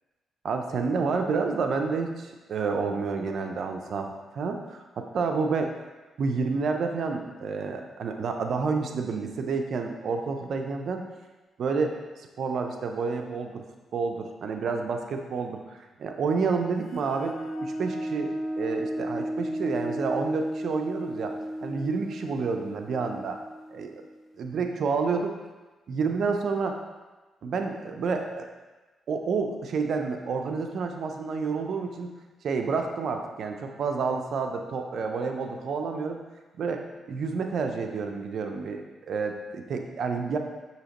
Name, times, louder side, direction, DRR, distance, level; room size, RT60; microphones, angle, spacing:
voice 1, 0.4-5.7 6.2-11.0 11.6-13.6 13.9-21.3 21.6-23.4 23.7-24.0 24.4-25.3 25.9-26.8 27.4-28.5 29.1-32.1 32.4-36.2 36.6-36.8 37.1-40.4, right 4 dB, 65° right, 4 dB, 0.5 m, -29 dB
sound 1, 16.8-24.3, equal, 35° left, 0.6 m, -34 dB
6.2 x 2.8 x 2.9 m, 1.2 s
supercardioid pair, 55°, 0 cm